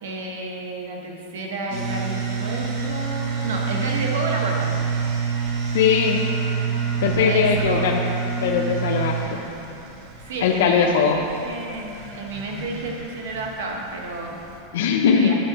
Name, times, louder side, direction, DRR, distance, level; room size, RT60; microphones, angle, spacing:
voice 1, 0.0-4.7 7.2-7.9 10.2-14.4 15.1-15.3, right 2 dB, 85° right, 0 dB, 1.3 m, -31 dB
sound 1, 1.7-14.6, right 5 dB, 60° right, 1.3 m, -28 dB
voice 2, 5.7-6.2 7.0-8.0 8.4-9.4 10.4-11.2 14.7-15.3, left 6 dB, 80° left, 1 dB, 0.6 m, -20 dB
10.0 x 7.1 x 2.9 m, 2.7 s
supercardioid pair, 145°, 0 cm